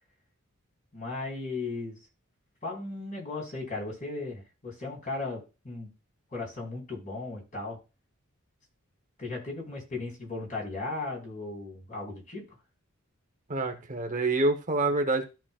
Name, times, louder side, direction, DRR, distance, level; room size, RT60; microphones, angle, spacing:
voice 1, 0.9-2.0 2.6-5.9 6.3-7.8 9.2-12.4, left 3 dB, 40° left, -2 dB, 4.2 m, -36 dB
voice 2, 13.5-15.3, right 2 dB, 35° right, 5 dB, 0.9 m, -27 dB
14.0 x 5.8 x 2.4 m, 0.29 s
head